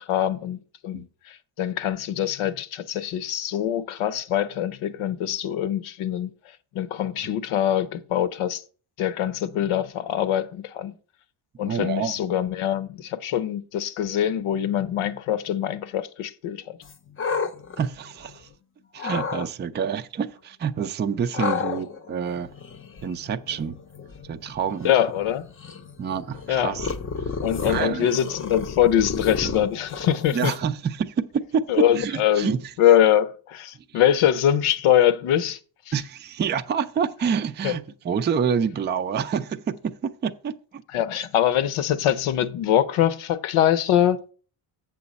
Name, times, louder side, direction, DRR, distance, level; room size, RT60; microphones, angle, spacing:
voice 1, 0.0-6.3 6.7-8.6 9.0-10.9 11.6-16.8 24.8-25.5 26.5-26.8 27.4-30.5 31.7-32.5 32.8-35.6 35.9-36.0 37.6-37.7 40.9-44.2, left 10 dB, 80° left, 0.8 m, -23 dB
voice 2, 11.6-12.1 17.8-18.5 18.9-22.5 23.0-23.8 24.3-24.9 26.0-26.9 27.6-28.1 29.4-29.5 30.3-32.6 33.9-34.0 35.9-40.8, right 7 dB, 25° right, 0.3 m, -27 dB
sound 1, 16.8-18.5 19.0-19.5 21.3-30.8, left 5 dB, 25° left, 0.6 m, -33 dB
7.7 x 6.8 x 4.1 m
cardioid pair, 125°, 49 cm